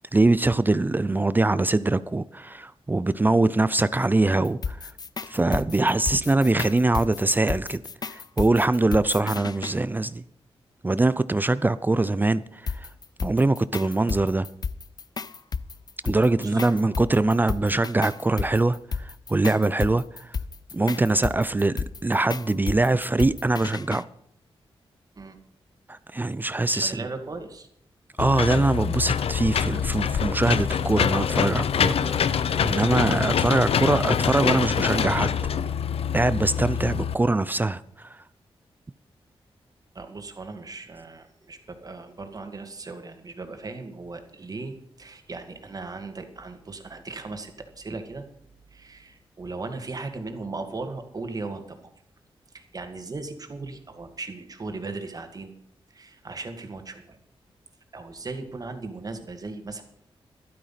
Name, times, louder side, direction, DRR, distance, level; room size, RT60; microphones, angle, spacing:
voice 1, 0.1-4.9 5.3-7.8 8.1-10.2 10.8-12.9 13.2-14.5 16.0-20.3 20.7-24.1 25.9-27.1 28.2-35.4 36.1-38.2, right 2 dB, 20° right, 0.5 m, -23 dB
sound 1, 4.4-9.8 12.7-24.0, left 5 dB, 40° left, 0.6 m, -33 dB
voice 2, 16.4-17.1 25.2-25.4 26.7-27.7 39.9-48.2 48.7-51.9 52.5-55.5 55.9-57.2 57.9-59.8, right 3 dB, 40° right, 2.2 m, -37 dB
Engine / Mechanisms, 28.2-37.1, left 7 dB, 75° left, 0.7 m, -25 dB
12.5 x 12.0 x 5.8 m
wide cardioid pair, 100°, 10 cm